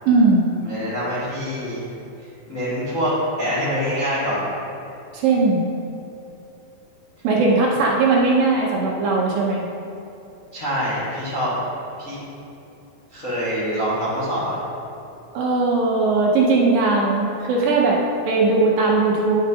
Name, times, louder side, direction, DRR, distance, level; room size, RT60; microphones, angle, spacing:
voice 1, 0.1-0.6 5.1-5.7 7.2-9.7 15.3-19.4, right 3 dB, 75° right, -3 dB, 2.3 m, -19 dB
voice 2, 0.6-1.8 2.5-3.1 3.4-4.4 7.7-7.8 10.5-11.5 12.0-12.2 13.1-14.6, equal, 45° left, -11 dB, 1.0 m, -25 dB
10.5 x 6.3 x 2.7 m, 2.8 s
omnidirectional pair, 4.5 m